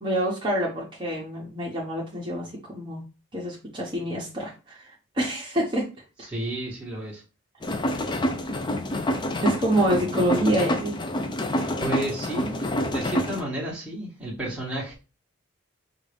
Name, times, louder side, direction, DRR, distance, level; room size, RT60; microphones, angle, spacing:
voice 1, 0.0-3.0 3.3-5.8 9.4-10.9, right 1 dB, 20° right, -5 dB, 1.0 m, -26 dB
voice 2, 6.3-7.2 11.8-14.9, right 1 dB, 5° right, -4 dB, 1.2 m, -32 dB
sound 1, 7.6-13.4, left 1 dB, 20° left, 0.4 m, -27 dB
5.2 x 2.5 x 3.3 m, 0.31 s
head